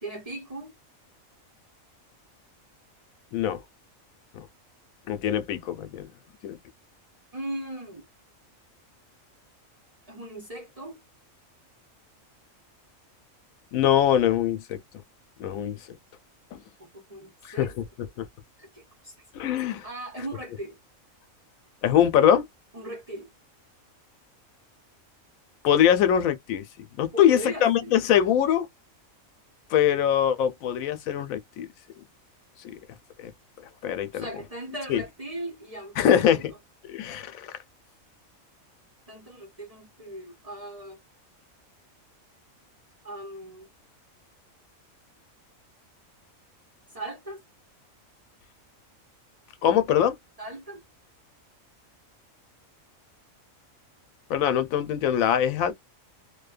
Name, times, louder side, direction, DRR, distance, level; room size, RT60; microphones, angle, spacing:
voice 1, 0.0-0.7 7.3-8.1 10.1-11.0 16.8-17.7 18.6-19.1 19.5-20.8 22.7-23.3 27.1-27.9 34.1-36.4 39.1-41.0 43.0-43.7 46.9-47.4 50.4-50.8, right 1 dB, 35° right, 0.7 m, -38 dB
voice 2, 3.3-3.6 4.3-4.5 5.1-6.1 6.4-6.6 13.7-14.8 15.4-15.8 16.5-16.6 17.4-17.7 18.2-18.3 19.3-19.8 21.8-22.5 25.6-26.6 27.0-28.7 29.7-31.7 32.6-32.8 33.2-33.3 33.8-34.3 34.9-35.0 36.0-36.4 36.9-37.5 49.6-50.2 54.3-55.7, left 9 dB, 85° left, 1.0 m, -23 dB
2.6 x 2.2 x 2.4 m
omnidirectional pair, 1.4 m